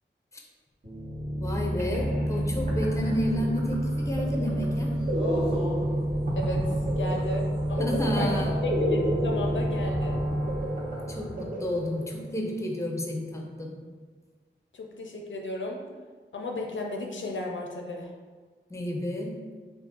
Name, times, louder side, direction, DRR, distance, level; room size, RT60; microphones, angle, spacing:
sound 1, 0.8-12.4, equal, 70° right, 1.3 m, -30 dB
voice 1, 1.4-4.9 7.8-8.6 11.1-13.8 18.7-19.3, left 1 dB, 15° left, 0 dB, 0.5 m, -31 dB
sound 2, 1.5-1.6 1.8-12.4, right 1 dB, 45° right, 0.7 m, -33 dB
sound 3, 4.1-11.0, left 1 dB, 30° right, 1.2 m, -43 dB
voice 2, 6.3-10.2 14.7-15.8 16.3-18.1, left 2 dB, 75° left, 0 dB, 0.4 m, -34 dB
2.5 x 2.4 x 3.6 m, 1.5 s
wide cardioid pair, 55°, 20 cm